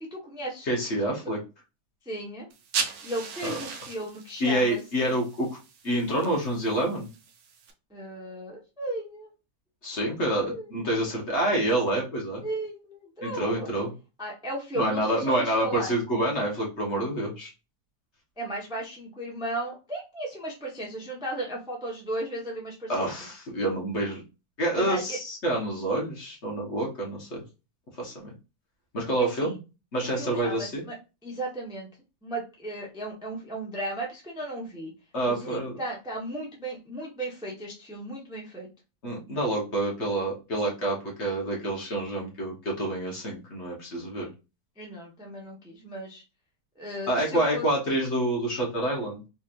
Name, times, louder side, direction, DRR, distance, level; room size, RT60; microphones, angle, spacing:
voice 1, 0.1-0.7 1.0-1.2 2.0-2.5 3.0-5.1 7.9-9.3 10.4-10.8 12.4-13.7 14.2-15.9 18.4-23.1 24.8-25.2 29.2-29.5 30.2-30.9 31.2-31.9 32.2-34.9 35.3-38.7 44.8-46.2 46.8-47.7, right 1 dB, 5° right, -1 dB, 0.7 m, -35 dB
voice 2, 0.7-1.4 3.4-3.6 4.4-5.6 5.8-7.1 9.8-12.4 13.2-13.9 14.8-17.5 22.9-24.2 24.6-27.4 28.0-28.3 28.9-29.6 29.9-30.8 35.1-35.7 39.0-44.3 47.1-49.2, right 1 dB, 45° left, -1 dB, 1.3 m, -27 dB
sound 1, 2.5-7.7, right 6 dB, 65° right, 1.2 m, -37 dB
4.2 x 3.1 x 2.5 m, 0.29 s
omnidirectional pair, 1.8 m